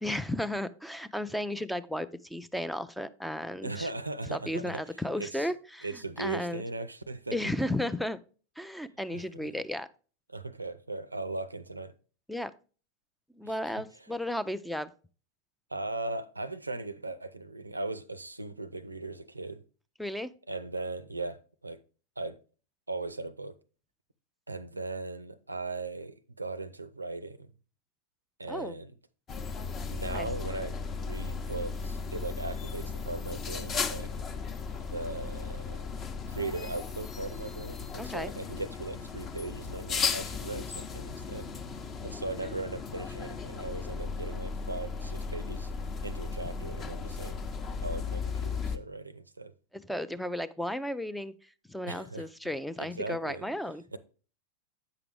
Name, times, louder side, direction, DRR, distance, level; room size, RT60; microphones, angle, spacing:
voice 1, 0.0-3.9 4.3-5.9 6.2-6.6 7.3-8.2 8.6-9.9 12.3-12.5 13.4-14.9 20.0-20.3 28.5-28.8 30.1-30.3 38.0-38.3 49.9-51.3 51.7-53.8, left 1 dB, ahead, 0.4 m, -34 dB
voice 2, 3.6-4.8 5.2-5.5 5.8-7.4 9.1-9.5 10.3-11.9 13.4-13.5 15.7-19.6 20.5-21.8 22.2-22.4 22.9-23.6 24.5-27.5 28.4-28.9 29.9-34.1 34.8-35.8 36.2-41.5 42.0-45.7 46.0-47.3 47.8-49.5 51.9-52.3 52.8-53.5 53.9-54.0, right 2 dB, 80° right, 0.5 m, -38 dB
sound 1, 29.3-48.8, left 5 dB, 30° left, 0.8 m, -36 dB
8.3 x 5.8 x 3.4 m
figure-of-eight pair, 90°, 0 cm